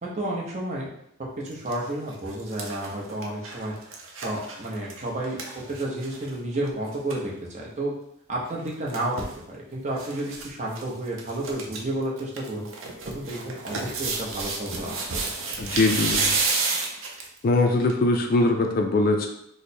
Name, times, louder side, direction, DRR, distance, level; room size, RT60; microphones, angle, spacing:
voice 1, 0.0-0.9 1.2-3.7 4.1-5.4 5.7-7.9 8.3-12.7 13.1-15.1 15.5-15.6, right 1 dB, 35° right, -4 dB, 0.7 m, -31 dB
sound 1, 1.5-1.7 2.1-6.4 6.7-6.8 6.9-7.2 8.5-9.4 10.0-10.5 10.7-10.8 11.2-11.8 12.2-17.4 17.9-18.0, right 4 dB, 75° right, 0.6 m, -30 dB
voice 2, 15.6-16.3 17.4-19.3, left 2 dB, 45° left, 3 dB, 0.3 m, -22 dB
3.2 x 2.0 x 4.2 m, 0.77 s
head